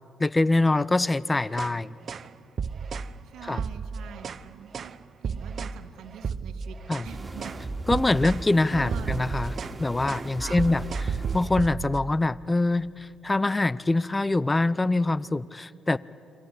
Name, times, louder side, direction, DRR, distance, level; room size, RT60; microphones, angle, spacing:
voice 1, 0.2-1.9 3.4-3.7 6.9-7.1 7.9-16.0, left 2 dB, 20° left, 20 dB, 0.7 m, -24 dB
sound 1, 1.5-1.8 2.1-2.3 2.6-3.1 3.5-4.4 4.7-5.0 5.2-5.8 6.2-7.1 7.4-7.6 7.9-8.5 8.7-9.8 10.1-10.3 10.6-12.1, right 6 dB, 50° right, 0.8 m, -33 dB
voice 2, 3.3-4.9 5.2-6.8 7.0-7.5 8.7-9.2 10.4-10.7, right 9 dB, 70° right, 5 dB, 1.7 m, -43 dB
sound 2, 7.1-11.4, right 2 dB, 20° right, 2.8 m, -37 dB
29.0 x 23.5 x 8.4 m, 2.7 s
hypercardioid pair, 50°, 0 cm